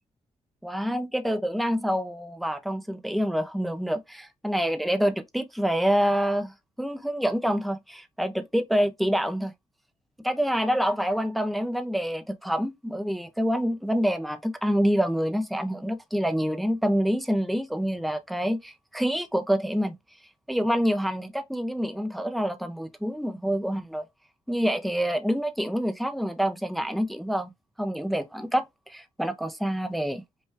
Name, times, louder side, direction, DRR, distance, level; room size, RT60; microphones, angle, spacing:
voice 1, 0.6-6.5 6.8-9.5 10.2-20.0 20.5-24.0 24.5-27.5 27.8-30.2, equal, ahead, 0.5 m, -27 dB
5.4 x 2.3 x 3.2 m
cardioid pair, 120°, 12 cm